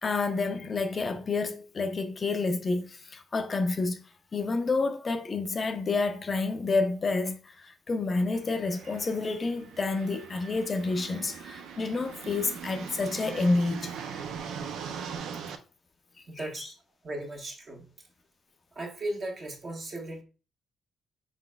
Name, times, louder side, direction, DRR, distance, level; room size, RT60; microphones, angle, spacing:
voice 1, 0.0-4.0 4.3-13.9 16.4-16.7, left 3 dB, 35° left, 0.5 m, -29 dB
sound 1, 8.3-15.6, right 7 dB, 80° right, 0.4 m, -41 dB
voice 2, 16.3-16.7 17.0-17.9 18.7-20.2, right 1 dB, 45° right, 1.3 m, -36 dB
4.9 x 3.9 x 2.2 m
cardioid pair, 90°, 0 cm